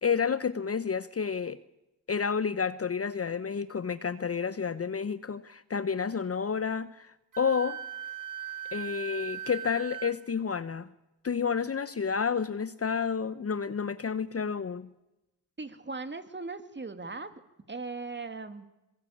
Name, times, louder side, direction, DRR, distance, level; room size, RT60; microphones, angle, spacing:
voice 1, 0.0-1.6 2.1-7.8 8.7-10.9 11.2-14.9, left 6 dB, 35° left, 14 dB, 1.0 m, -30 dB
Wind instrument woodwind instrument, 7.3-10.1, right 11 dB, 45° right, 2.1 m, -39 dB
voice 2, 15.6-17.3 17.7-18.7, right 3 dB, 25° right, 9 dB, 2.5 m, -38 dB
24.0 x 22.0 x 8.7 m, 0.95 s
supercardioid pair, 60°, 43 cm